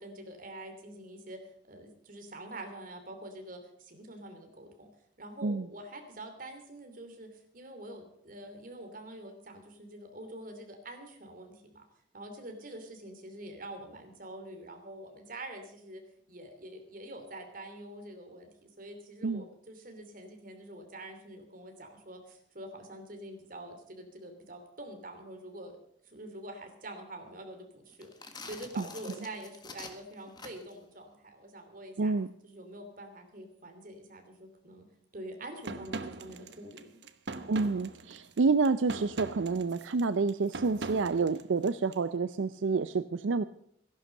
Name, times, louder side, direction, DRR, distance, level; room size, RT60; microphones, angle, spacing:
voice 1, 0.0-1.4 1.7-4.9 5.2-11.8 12.1-16.0 16.3-25.8 26.0-32.1 32.4-34.9 35.1-37.0, right 1 dB, 45° right, 5 dB, 2.9 m, -46 dB
sound 1, 27.9-30.8, left 4 dB, 20° left, 1.5 m, -47 dB
voice 2, 32.0-32.3 37.5-43.4, right 4 dB, 80° right, 13 dB, 0.5 m, -28 dB
sound 2, 35.6-42.0, right 3 dB, 65° right, 0.9 m, -41 dB
14.5 x 11.5 x 6.5 m, 0.70 s
head